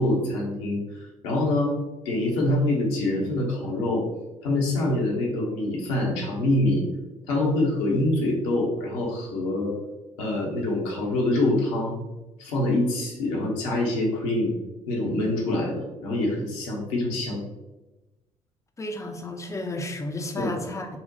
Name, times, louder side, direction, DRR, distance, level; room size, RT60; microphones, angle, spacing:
voice 1, 0.0-1.7 2.0-4.0 4.4-6.8 7.3-9.8 10.2-12.0 12.4-14.5 14.9-17.4 20.4-20.5, left 1 dB, 70° left, -1 dB, 0.8 m, -25 dB
voice 2, 18.8-20.9, left 1 dB, 20° left, 5 dB, 0.5 m, -32 dB
4.0 x 2.1 x 2.6 m, 1.1 s
figure-of-eight pair, 45°, 17 cm